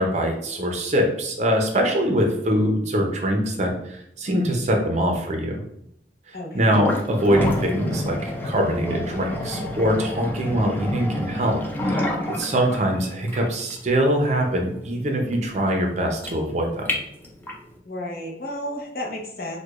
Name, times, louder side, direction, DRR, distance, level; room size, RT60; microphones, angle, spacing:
voice 1, 0.0-5.6 6.3-11.6 11.8-12.1 12.4-16.9, equal, 40° right, 2 dB, 0.5 m, -23 dB
voice 2, 6.3-6.7 17.9-19.6, left 1 dB, 55° left, 0 dB, 0.7 m, -32 dB
sound 1, 6.7-17.7, left 1 dB, 10° left, 0.4 m, -29 dB
4.5 x 2.2 x 2.4 m, 0.74 s
head